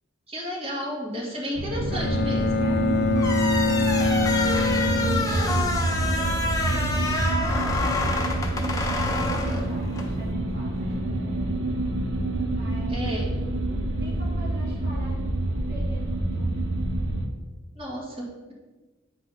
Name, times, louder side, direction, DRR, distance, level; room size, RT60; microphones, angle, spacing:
voice 1, 0.3-2.7 9.4-9.6 12.9-13.3 17.7-18.5, equal, 30° right, -5 dB, 2.0 m, -32 dB
sound 1, 1.6-17.3, right 1 dB, 70° right, 0.9 m, -27 dB
voice 2, 1.7-2.1 2.6-3.3 3.6-11.4 12.4-13.3 14.0-16.7, right 1 dB, 50° right, -7 dB, 1.5 m, -43 dB
Bowed string instrument, 1.9-6.0, left 3 dB, 50° left, 0.5 m, -25 dB
sound 2, 3.2-10.1, left 2 dB, 15° left, 0.7 m, -28 dB
8.3 x 5.0 x 3.9 m, 1.2 s
head